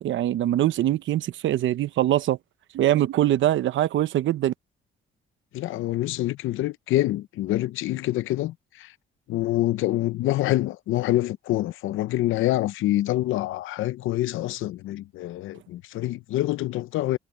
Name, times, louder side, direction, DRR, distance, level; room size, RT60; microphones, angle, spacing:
voice 1, 0.0-2.4 2.7-4.5, right 13 dB, 75° right, 0.8 m, -23 dB
voice 2, 5.5-8.9 9.3-17.2, left 15 dB, 85° left, 0.7 m, -26 dB
cardioid pair, 90°, 20 cm